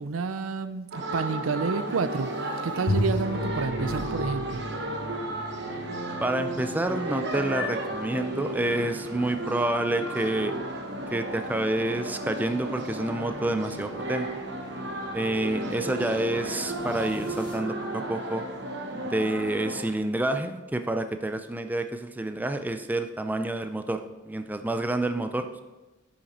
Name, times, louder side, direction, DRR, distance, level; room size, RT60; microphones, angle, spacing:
voice 1, 0.0-4.6, right 4 dB, 85° right, 12 dB, 0.5 m, -30 dB
sound 1, 0.9-19.8, right 1 dB, 60° right, 1.0 m, -34 dB
sound 2, 1.8-17.5, equal, 25° left, 1.5 m, -49 dB
Bowed string instrument, 2.9-7.1, equal, 75° left, 1.0 m, -33 dB
voice 2, 6.2-10.5 11.1-14.3 15.1-18.4 19.0-24.0 24.3-25.6, right 1 dB, 10° right, 8 dB, 0.3 m, -28 dB
8.9 x 5.8 x 4.2 m, 1.1 s
head